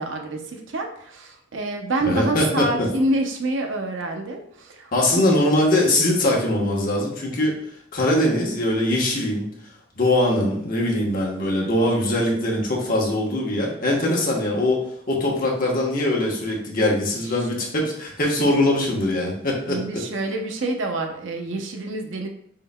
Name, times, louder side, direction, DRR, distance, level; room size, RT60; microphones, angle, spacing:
voice 1, 0.0-5.2 18.4-18.5 19.7-22.3, right 2 dB, 80° right, 4 dB, 0.6 m, -27 dB
voice 2, 2.0-2.9 4.9-7.6 7.9-9.5 9.9-14.8 15.1-20.0, left 1 dB, 50° left, -2 dB, 1.0 m, -22 dB
5.1 x 3.8 x 2.2 m, 0.69 s
head